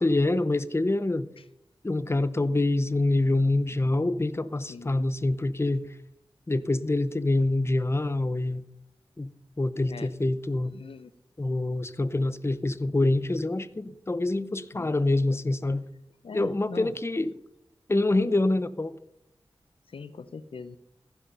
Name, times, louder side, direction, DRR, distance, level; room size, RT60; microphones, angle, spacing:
voice 1, 0.0-1.3 1.8-5.9 6.5-8.6 9.2-9.3 9.6-10.7 11.4-15.8 16.3-17.3 17.9-19.0, left 2 dB, 25° left, 0.8 m, -26 dB
voice 2, 4.7-5.1 9.8-10.1 10.7-11.1 14.7-15.0 16.2-16.9 19.9-20.8, left 4 dB, 75° left, 0.6 m, -41 dB
15.0 x 10.5 x 5.6 m
cardioid pair, 50°, 9 cm